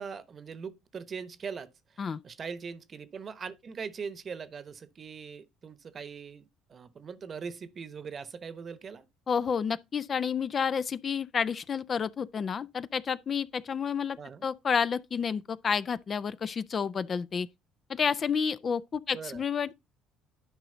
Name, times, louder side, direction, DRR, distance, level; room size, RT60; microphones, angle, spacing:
voice 1, 0.0-9.1 14.2-14.4 19.1-19.4, right 6 dB, 40° right, 0.9 m, -41 dB
voice 2, 9.3-17.5 17.9-19.7, left 6 dB, 40° left, 0.4 m, -30 dB
11.0 x 5.0 x 3.8 m
supercardioid pair, 75°, 0 cm